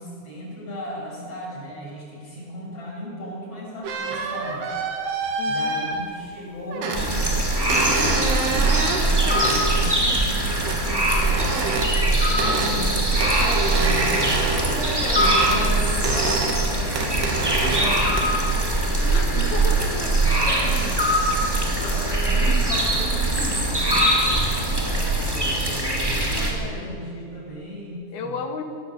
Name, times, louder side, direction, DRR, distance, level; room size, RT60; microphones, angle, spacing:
voice 1, 0.0-4.6 5.5-14.1 14.5-19.5 20.2-21.0 21.3-24.5 24.9-28.4, left 1 dB, 35° left, -4 dB, 7.9 m, -36 dB
sound 1, 3.8-6.3 6.7-7.1 7.7-9.6 10.6-10.8 11.1-11.9 12.4-12.8 13.2-15.6 15.9-16.6 17.0-17.9 18.2-18.6, right 3 dB, 80° right, 4.3 m, -27 dB
voice 2, 5.4-5.8 12.3-12.9 14.3-15.1 18.2-18.3 19.1-20.2 26.4-27.0 28.1-28.6, left 5 dB, 75° left, 5 dB, 3.6 m, -34 dB
sound 2, 6.9-26.5, right 1 dB, 5° right, 2.3 m, -22 dB
22.0 x 17.0 x 8.4 m, 2.4 s
omnidirectional pair, 4.6 m